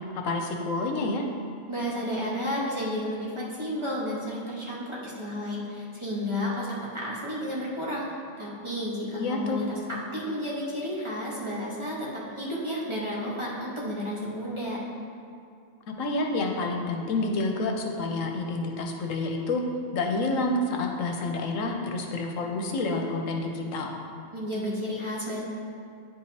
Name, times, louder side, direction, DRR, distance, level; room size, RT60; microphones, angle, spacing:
voice 1, 0.1-1.2 9.1-9.6 16.0-19.6 19.9-23.9, left 2 dB, 75° left, 2 dB, 1.0 m, -28 dB
voice 2, 1.7-8.1 8.4-14.8 24.3-25.4, equal, 25° right, -7 dB, 1.1 m, -32 dB
9.9 x 4.8 x 2.8 m, 2.5 s
omnidirectional pair, 1.4 m